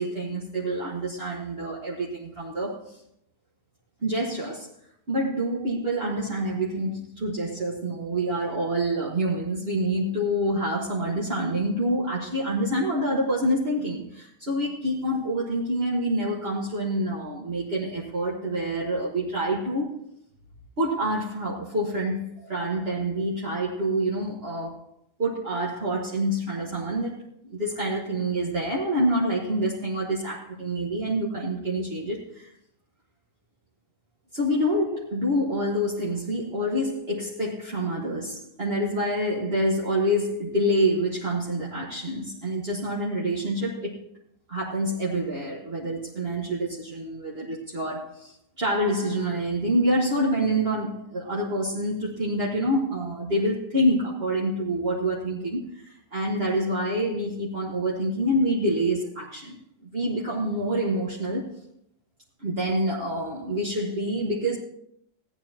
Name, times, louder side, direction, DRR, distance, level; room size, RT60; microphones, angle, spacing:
voice 1, 0.0-3.0 4.0-4.7 5.1-19.9 20.8-24.8 25.2-32.5 34.3-44.0 44.5-61.5 62.4-64.6, right 1 dB, 45° right, -5 dB, 1.7 m, -27 dB
16.5 x 9.9 x 2.8 m, 0.74 s
omnidirectional pair, 1.4 m